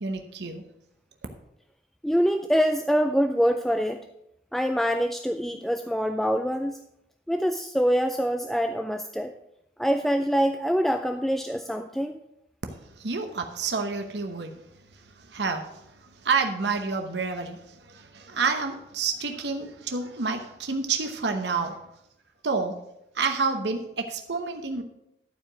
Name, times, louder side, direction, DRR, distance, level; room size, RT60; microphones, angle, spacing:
voice 1, 0.0-0.6 13.0-14.5 15.3-15.8 16.2-21.7 22.4-22.7 23.1-24.8, right 4 dB, 85° right, 5 dB, 0.9 m, -29 dB
voice 2, 2.0-4.0 4.5-6.8 7.3-9.3 9.8-12.1, equal, ahead, 6 dB, 0.3 m, -25 dB
11.5 x 4.8 x 6.2 m, 0.81 s
head